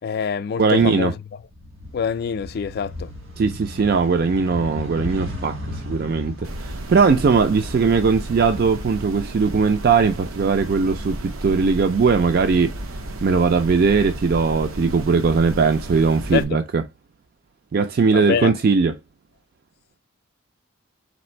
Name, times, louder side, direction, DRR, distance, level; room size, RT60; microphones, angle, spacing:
voice 1, 0.0-1.1 1.9-3.1 16.3-16.6 18.1-18.5, left 6 dB, 50° left, 0.3 m, -25 dB
voice 2, 0.6-1.1 3.4-12.7 13.2-16.8 17.7-19.0, right 5 dB, 45° right, 0.3 m, -19 dB
sound 1, 1.4-9.5 9.9-11.0, left 1 dB, 75° right, 1.7 m, -35 dB
sound 2, 6.4-16.4, right 1 dB, 90° right, 0.7 m, -33 dB
4.1 x 2.5 x 4.3 m
head